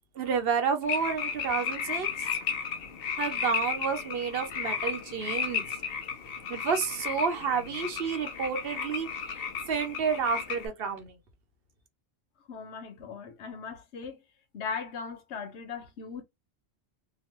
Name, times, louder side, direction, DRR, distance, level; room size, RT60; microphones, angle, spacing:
voice 1, 0.1-2.1 3.2-5.7 6.5-9.1 9.7-11.1, right 6 dB, 65° right, 0.9 m, -30 dB
sound 1, 0.8-10.7, left 7 dB, 65° left, 0.8 m, -34 dB
voice 2, 12.5-14.2 14.5-16.2, left 5 dB, 90° left, 1.1 m, -38 dB
2.9 x 2.1 x 2.9 m
omnidirectional pair, 1.1 m